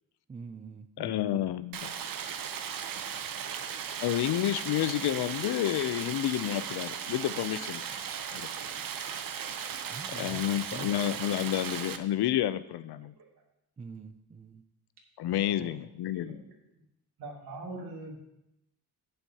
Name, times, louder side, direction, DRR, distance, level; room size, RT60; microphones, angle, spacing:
voice 1, 0.3-1.2 9.9-10.4 10.7-10.9 13.8-14.6, right 5 dB, 20° right, 10 dB, 0.4 m, -44 dB
voice 2, 1.0-1.9 4.0-7.8 8.3-8.5 10.1-13.1 15.2-16.4, left 12 dB, 90° left, 15 dB, 0.6 m, -30 dB
Stream, 1.7-12.0, right 8 dB, 60° right, 0.7 m, -37 dB
voice 3, 7.6-8.0 12.2-12.3 13.2-13.3 15.2-15.7 16.1-16.6 17.2-18.1, right 2 dB, 80° right, -2 dB, 2.7 m, -45 dB
11.5 x 9.1 x 2.8 m, 0.83 s
wide cardioid pair, 135°, 38 cm